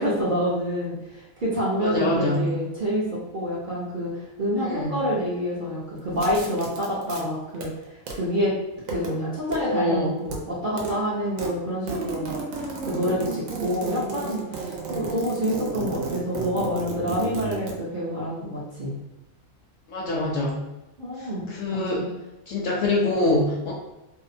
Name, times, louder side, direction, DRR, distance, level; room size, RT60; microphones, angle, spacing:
voice 1, 0.0-8.5 8.9-18.9 21.0-22.1, equal, 50° right, -8 dB, 0.6 m, -27 dB
voice 2, 1.8-2.5 4.6-4.9 9.7-10.1 19.9-20.6 21.6-22.0 22.5-23.7, left 1 dB, 65° left, -3 dB, 0.7 m, -24 dB
sound 1, 6.1-7.2 7.5-8.1 8.7-9.1 9.5-9.6 9.9-10.4 10.7-11.0 11.2-17.7, right 4 dB, 70° right, 1.0 m, -33 dB
2.7 x 2.0 x 2.5 m, 0.97 s
omnidirectional pair, 1.5 m